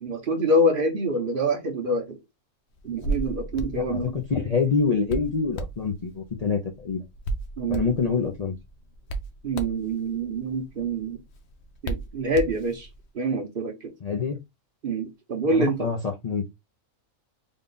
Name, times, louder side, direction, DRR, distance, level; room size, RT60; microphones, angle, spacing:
voice 1, 0.0-2.2 2.8-4.1 7.6-7.9 9.4-11.2 11.8-12.9 13.1-13.9 14.8-15.9, right 1 dB, 50° right, 0.9 m, -26 dB
Hands, 2.8-13.0, right 2 dB, 60° left, 0.9 m, -36 dB
voice 2, 3.7-7.0 7.7-8.6 14.0-14.4 15.4-16.5, left 5 dB, 40° left, 0.6 m, -26 dB
3.6 x 2.3 x 3.8 m
omnidirectional pair, 1.3 m